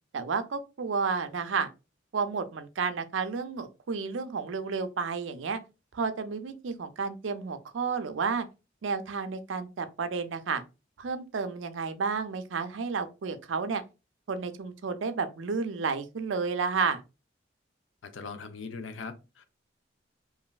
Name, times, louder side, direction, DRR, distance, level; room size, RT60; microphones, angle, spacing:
voice 1, 0.1-1.7 2.1-5.6 5.9-8.5 8.8-10.6 11.0-13.8 14.3-17.0, right 5 dB, 85° right, 0.5 m, -31 dB
voice 2, 18.1-19.5, left 4 dB, 85° left, 0.5 m, -40 dB
3.0 x 2.6 x 2.3 m
head